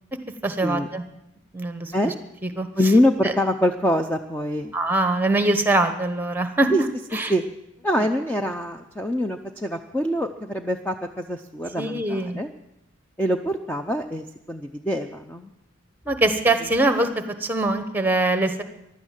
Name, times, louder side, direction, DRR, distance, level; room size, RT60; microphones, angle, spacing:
voice 1, 0.4-1.0 1.5-2.1 2.6-2.7 3.2-3.3 4.7-6.7 7.1-7.3 11.8-12.4 16.1-18.6, right 2 dB, 10° right, 9 dB, 1.1 m, -23 dB
voice 2, 2.7-4.7 6.7-6.8 7.3-7.4 7.8-12.5 13.2-15.5, equal, 10° left, 4 dB, 0.5 m, -24 dB
15.5 x 11.5 x 7.4 m, 0.87 s
head